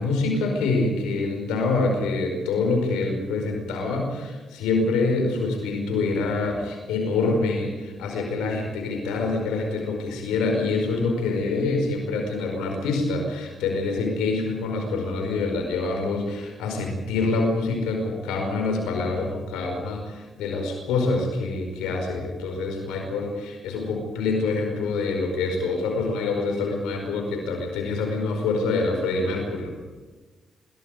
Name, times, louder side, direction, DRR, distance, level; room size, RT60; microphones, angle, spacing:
voice 1, 0.0-29.7, left 3 dB, 85° left, 2 dB, 5.1 m, -26 dB
27.0 x 22.5 x 5.2 m, 1.3 s
hypercardioid pair, 45°, 0 cm